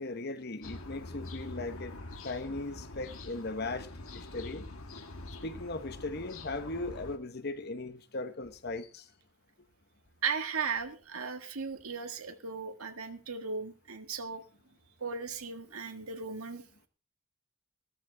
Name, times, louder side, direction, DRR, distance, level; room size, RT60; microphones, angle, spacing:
voice 1, 0.0-2.0 2.2-3.9 4.1-4.7 5.4-9.0, left 2 dB, 45° left, 1.0 m, -38 dB
sound 1, 0.6-7.2, left 2 dB, 75° left, 1.7 m, -45 dB
voice 2, 10.2-14.4 15.0-16.6, right 5 dB, 80° right, 1.8 m, -36 dB
15.5 x 13.5 x 3.5 m
head